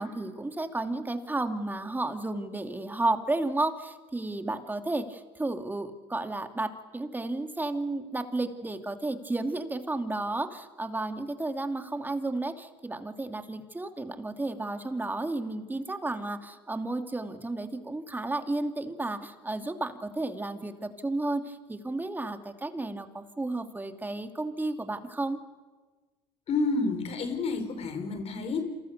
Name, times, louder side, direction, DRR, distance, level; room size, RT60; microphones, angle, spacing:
voice 1, 0.0-25.4, right 2 dB, 15° right, 6 dB, 2.9 m, -32 dB
voice 2, 26.5-28.6, left 3 dB, 50° left, 7 dB, 5.1 m, -29 dB
28.5 x 27.0 x 6.9 m, 1.3 s
hypercardioid pair, 70°, 14 cm